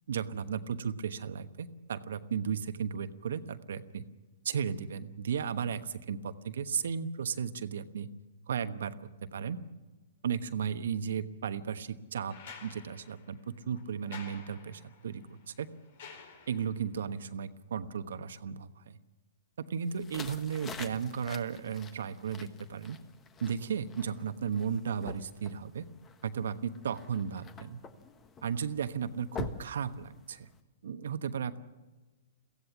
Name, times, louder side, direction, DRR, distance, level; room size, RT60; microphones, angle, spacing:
voice 1, 0.1-4.0 4.4-8.1 8.5-9.6 10.2-12.4 12.6-15.7 16.5-19.0 19.6-23.0 23.4-25.8 26.2-27.8 28.4-30.5 30.8-31.6, right 7 dB, 70° right, 11 dB, 1.2 m, -35 dB
sound 1, 12.3-16.9 18.5-18.6, left 6 dB, 60° left, 4.4 m, -51 dB
sound 2, 19.9-30.6, left 5 dB, 20° left, 1.3 m, -47 dB
23.0 x 16.0 x 7.3 m, 1.2 s
hypercardioid pair, 125°, 0 cm